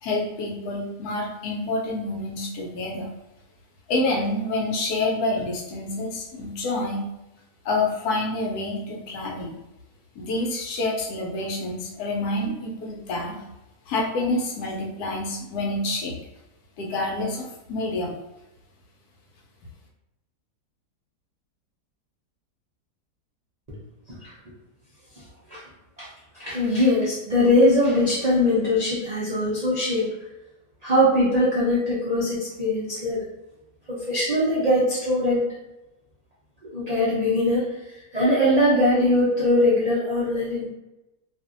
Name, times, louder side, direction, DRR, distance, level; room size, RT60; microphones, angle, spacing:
voice 1, 0.0-3.1 3.9-7.0 7.6-9.6 10.2-13.4 13.9-16.2 16.8-18.1, left 2 dB, 75° left, -1 dB, 1.1 m, -27 dB
voice 2, 26.3-30.1 30.8-33.2 33.9-35.5 36.7-40.7, left 1 dB, 70° right, -9 dB, 0.3 m, -21 dB
2.7 x 2.5 x 2.5 m, 0.97 s
omnidirectional pair, 1.8 m